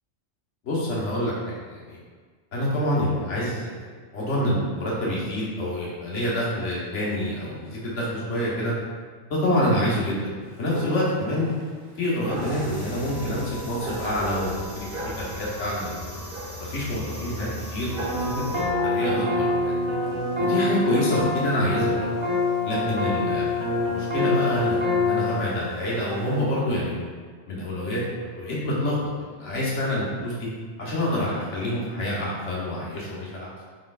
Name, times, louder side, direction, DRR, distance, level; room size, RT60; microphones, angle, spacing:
voice 1, 0.6-2.0 2.5-3.9 4.1-8.7 9.3-11.5 12.0-14.9 15.2-16.1 16.6-17.9 18.5-19.7 20.4-22.1 22.7-23.4 23.8-27.0 27.5-30.5 30.8-33.7, left 1 dB, 75° left, -6 dB, 1.4 m, -27 dB
Dog, 10.4-26.4, right 2 dB, 55° right, 0.8 m, -40 dB
sound 1, 12.3-18.6, left 1 dB, 50° left, 1.2 m, -38 dB
sound 2, 18.1-25.5, left 2 dB, 40° right, 0.4 m, -25 dB
4.4 x 4.2 x 2.3 m, 1.5 s
omnidirectional pair, 1.3 m